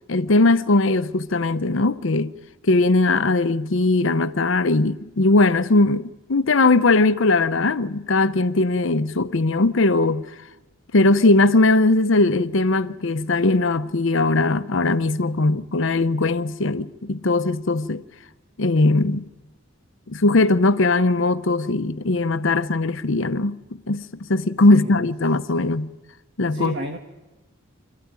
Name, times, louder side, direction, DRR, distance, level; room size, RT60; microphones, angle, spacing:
voice 1, 0.1-2.3 2.6-10.3 10.9-18.0 18.6-19.2 20.1-23.6 23.9-24.0 24.3-25.9 26.4-26.7, left 2 dB, 60° left, 0.8 m, -19 dB
voice 2, 24.7-25.0 26.5-27.0, right 1 dB, 55° right, 1.5 m, -32 dB
26.0 x 14.0 x 9.6 m
head